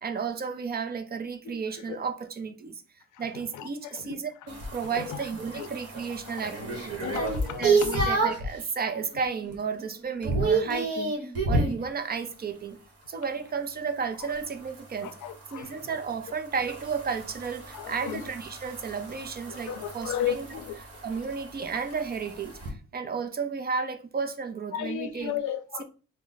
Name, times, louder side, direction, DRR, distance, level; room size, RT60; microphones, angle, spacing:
voice 1, 0.0-2.8 3.2-4.3 4.7-7.1 7.6-12.8 13.1-15.1 15.5-20.6 21.0-25.3, right 5 dB, 30° right, 0.5 m, -33 dB
voice 2, 3.5-4.2 4.8-5.2 5.6-5.7 7.0-8.0 15.0-15.8 17.7-18.2 19.5-20.8 24.7-25.8, left 10 dB, 80° left, 0.5 m, -34 dB
sound 1, 4.5-8.5 9.0-9.4 9.7-11.8 14.3-22.7, right 3 dB, 50° right, 1.3 m, -31 dB
3.4 x 2.1 x 4.0 m
cardioid pair, 90°, 30 cm